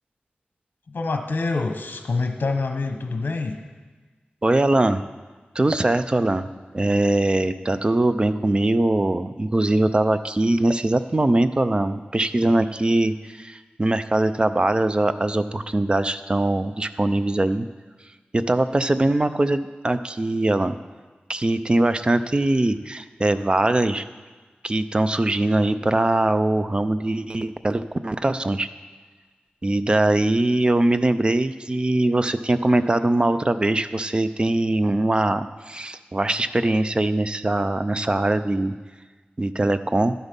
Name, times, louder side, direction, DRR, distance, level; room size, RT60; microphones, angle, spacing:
voice 1, 0.9-3.6, left 3 dB, 65° left, 5 dB, 1.0 m, -26 dB
voice 2, 4.4-5.0 5.6-6.5 6.7-17.7 18.3-20.8 21.3-24.1 24.6-28.7 29.6-38.7 39.4-40.1, right 2 dB, 30° right, 11 dB, 0.4 m, -21 dB
12.0 x 8.2 x 5.2 m, 1.3 s
wide cardioid pair, 100°, 3 cm